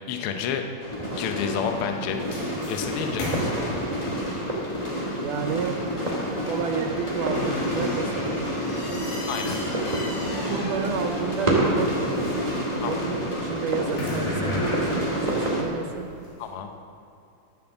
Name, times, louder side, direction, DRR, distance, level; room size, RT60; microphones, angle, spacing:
voice 1, 0.1-0.6 1.2-2.2 2.7-3.5 9.3-9.6 12.8-12.9 16.4-16.7, left 7 dB, 70° left, 5 dB, 1.3 m, -29 dB
sound 1, 0.8-15.6, equal, 45° left, 0.4 m, -30 dB
sound 2, 0.9-15.5, right 1 dB, 15° right, 1.5 m, -33 dB
sound 3, 1.0-16.4, left 2 dB, 90° left, 3.7 m, -37 dB
voice 2, 5.1-5.8 6.5-9.1 10.5-16.1, right 6 dB, 85° right, 5 dB, 2.5 m, -31 dB
11.0 x 7.9 x 7.2 m, 2.6 s
omnidirectional pair, 3.6 m